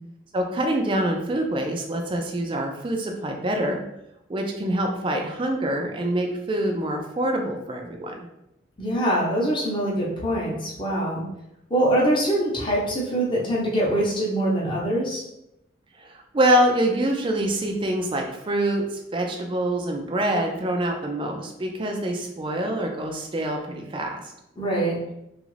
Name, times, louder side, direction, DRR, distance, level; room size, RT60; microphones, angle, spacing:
voice 1, 0.3-3.8 4.3-8.2 16.0-24.2, right 1 dB, 25° right, 2 dB, 0.3 m, -25 dB
voice 2, 8.8-11.2 11.7-15.2 24.6-25.0, right 1 dB, 25° left, -5 dB, 0.7 m, -23 dB
3.0 x 2.4 x 3.1 m, 0.84 s
head